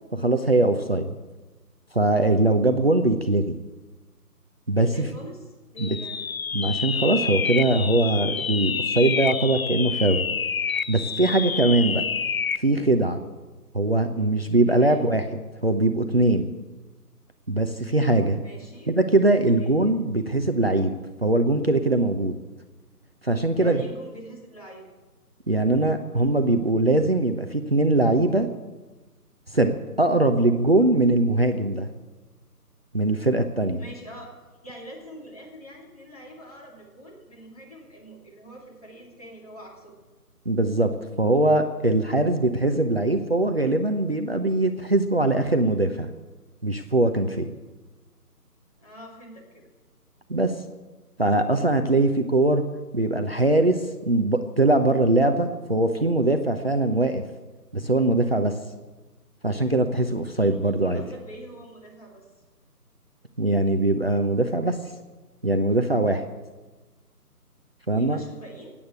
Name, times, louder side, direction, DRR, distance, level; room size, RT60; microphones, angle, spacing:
voice 1, 0.1-1.1 1.9-3.5 4.7-5.1 5.8-5.9 6.5-10.2 10.9-12.0 12.6-13.2 13.7-15.2 15.6-16.5 17.5-18.4 18.9-20.9 21.2-22.4 23.2-23.8 25.5-28.5 29.5-31.9 32.9-33.8 40.5-40.9 41.2-46.1 46.6-47.5 50.3-50.5 51.2-52.6 52.9-57.2 57.7-58.6 59.4-61.0 63.4-64.8 65.4-66.2 67.9-68.2, right 2 dB, 40° right, 7 dB, 0.8 m, -21 dB
voice 2, 4.7-6.3 11.8-12.0 14.6-15.0 18.4-18.9 19.6-19.9 23.5-24.9 33.8-34.3 34.6-40.0 48.8-49.7 60.3-62.3 67.9-68.7, right 1 dB, 25° left, -1 dB, 2.5 m, -44 dB
sound 1, 5.8-12.7, left 6 dB, 60° left, 0.5 m, -28 dB
16.5 x 8.7 x 8.0 m, 1.2 s
figure-of-eight pair, 175°, 48 cm